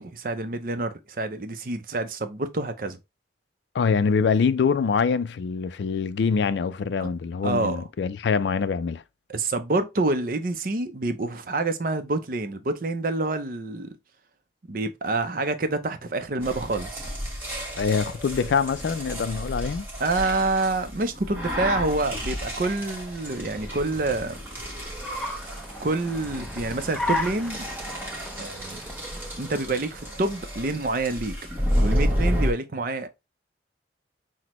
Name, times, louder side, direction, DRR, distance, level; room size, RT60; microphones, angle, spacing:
voice 1, 0.0-3.0 7.0-7.1 7.4-7.9 9.3-13.9 14.7-17.0 20.0-24.4 25.5-27.7 28.4-28.8 29.4-31.3 31.6-33.1, right 2 dB, 50° right, 0.5 m, -27 dB
voice 2, 3.7-9.0 17.8-19.9, left 5 dB, 75° left, 0.3 m, -24 dB
sound 1, 16.4-32.5, equal, 10° right, 1.2 m, -31 dB
Car, 21.1-30.6, left 1 dB, 5° left, 0.5 m, -37 dB
6.0 x 2.1 x 3.0 m
head